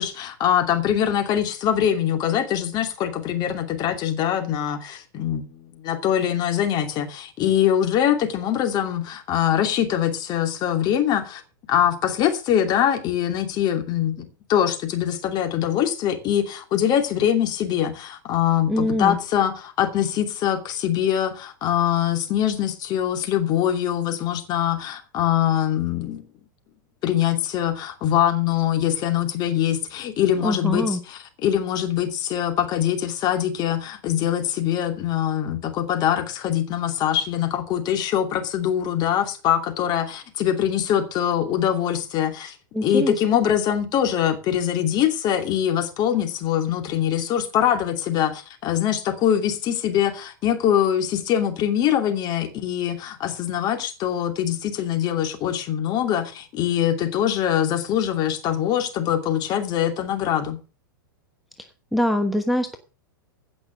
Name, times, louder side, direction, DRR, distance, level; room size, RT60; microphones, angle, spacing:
voice 1, 0.0-11.4 11.7-26.2 27.0-42.6 42.8-60.6, left 10 dB, 40° left, 2.7 m, -23 dB
voice 2, 18.7-19.2 30.4-31.0 42.7-43.2 61.9-62.8, left 1 dB, ahead, 1.2 m, -23 dB
16.0 x 6.1 x 6.4 m
hypercardioid pair, 105°, 11 cm